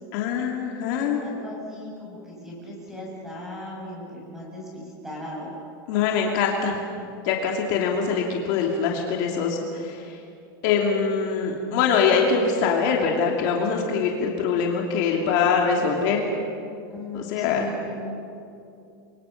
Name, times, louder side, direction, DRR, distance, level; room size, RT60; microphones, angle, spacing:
voice 1, 0.1-1.2 5.9-6.8 7.2-10.2 10.6-16.3 17.1-17.7, left 6 dB, 50° left, 0 dB, 2.8 m, -23 dB
voice 2, 1.2-5.5 16.9-17.9, left 1 dB, 5° right, -4 dB, 7.5 m, -38 dB
30.0 x 24.0 x 5.9 m, 2.6 s
supercardioid pair, 165°, 12 cm